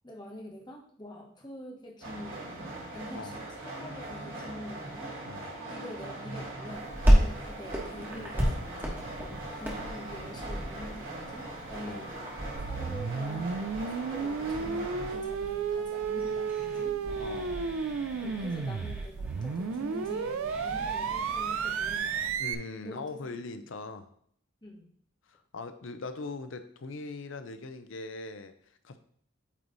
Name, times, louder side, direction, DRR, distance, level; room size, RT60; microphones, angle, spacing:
voice 1, 0.0-5.2 5.7-12.3 12.7-17.0 18.2-22.1 22.8-23.3 24.6-24.9, left 1 dB, 20° left, 0 dB, 1.1 m, -45 dB
sound 1, 2.0-15.1, right 2 dB, 75° right, 2.4 m, -41 dB
sound 2, 6.7-22.4, equal, 10° right, 1.2 m, -33 dB
sound 3, 12.6-22.6, right 5 dB, 90° right, 0.4 m, -32 dB
voice 2, 17.2-17.7 22.4-24.1 25.3-29.0, left 3 dB, 70° left, 9 dB, 0.6 m, -41 dB
8.6 x 3.1 x 3.9 m, 0.62 s
head